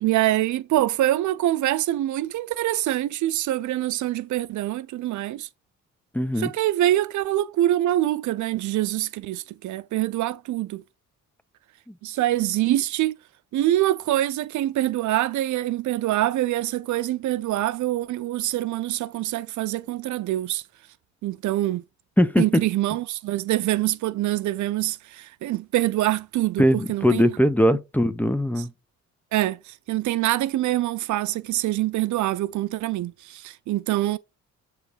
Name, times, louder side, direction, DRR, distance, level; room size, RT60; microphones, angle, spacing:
voice 1, 0.0-5.5 6.4-10.8 12.0-13.2 13.5-20.6 21.2-21.8 22.4-27.3 28.6-28.7 29.3-34.2, right 14 dB, 75° right, 0.6 m, -25 dB
voice 2, 6.1-6.5 22.2-22.4 26.6-28.7, equal, 5° left, 0.7 m, -20 dB
8.1 x 3.2 x 5.1 m
cardioid pair, 90°, 30 cm